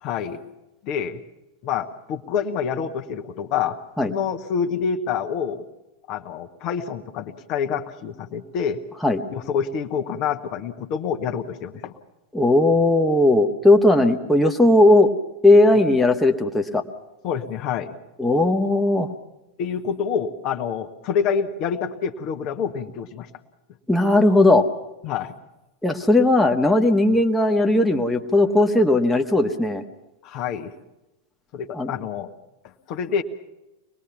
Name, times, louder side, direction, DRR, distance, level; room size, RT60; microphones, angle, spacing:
voice 1, 0.0-0.4 0.8-1.2 1.6-5.6 6.1-8.8 9.3-11.9 17.2-17.9 19.6-23.3 25.0-25.4 30.2-30.7 31.5-32.3 32.9-33.2, left 7 dB, 40° left, 5 dB, 1.5 m, -27 dB
voice 2, 12.3-15.1 15.4-16.8 18.2-19.1 23.9-24.6 25.8-29.8 31.7-31.9, left 2 dB, 5° left, 2 dB, 1.5 m, -17 dB
25.0 x 20.5 x 5.9 m, 0.99 s
figure-of-eight pair, 90°, 0 cm